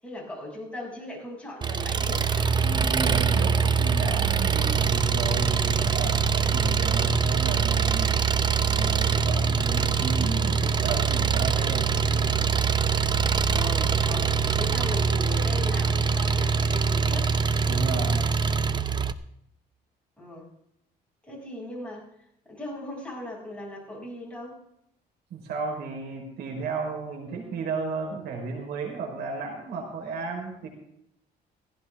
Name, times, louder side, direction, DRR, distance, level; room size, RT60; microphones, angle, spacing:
voice 1, 0.0-2.5 2.9-3.5 3.8-4.0 13.4-17.3 20.2-20.5 21.2-24.6, left 1 dB, 5° left, -3 dB, 6.9 m, -39 dB
Engine, 1.6-19.1, right 6 dB, 25° right, 0.7 m, -24 dB
voice 2, 2.5-8.1 8.6-12.4 17.7-18.3 25.3-30.7, right 4 dB, 75° right, 2 dB, 4.3 m, -33 dB
17.0 x 15.5 x 3.6 m, 0.76 s
cardioid pair, 110°, 17 cm